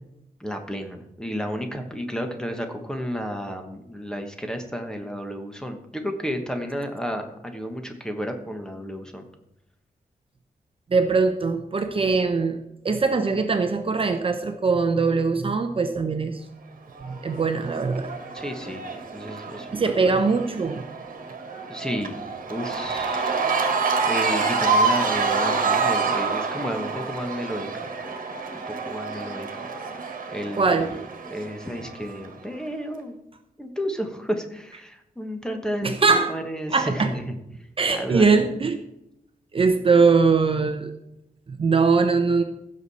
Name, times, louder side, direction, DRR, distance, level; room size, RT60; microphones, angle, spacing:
voice 1, 0.4-9.2 18.3-18.8 19.1-20.2 21.7-22.2 22.5-23.3 24.1-27.9 28.5-29.5 30.3-31.0 31.3-33.1 33.6-37.3 37.9-38.3, equal, 5° left, 5 dB, 1.2 m, -32 dB
voice 2, 10.9-12.6 12.8-16.4 17.0-18.1 19.7-20.8 30.6-31.0 35.8-36.3 36.7-37.1 37.8-38.8 39.5-40.9 41.5-42.4, right 4 dB, 35° right, 7 dB, 0.7 m, -21 dB
Cheering / Crowd, 17.0-32.3, right 4 dB, 65° right, 1.5 m, -27 dB
16.0 x 6.4 x 4.2 m, 0.85 s
wide cardioid pair, 160°, 15 cm